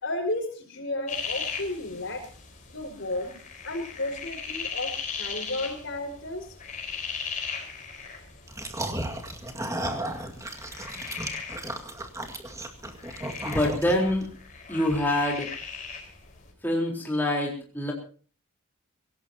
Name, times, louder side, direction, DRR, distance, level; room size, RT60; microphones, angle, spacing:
voice 1, 0.0-2.2 2.7-3.3 3.6-6.5, left 2 dB, 55° left, 4 dB, 5.2 m, -33 dB
sound 1, 1.1-16.5, left 6 dB, 35° left, 4.8 m, -38 dB
sound 2, 8.5-14.2, right 1 dB, 15° right, 2.1 m, -34 dB
voice 2, 13.4-14.2 14.7-15.5 16.6-17.9, left 1 dB, 10° left, -1 dB, 4.0 m, -25 dB
24.5 x 18.0 x 2.9 m, 0.40 s
head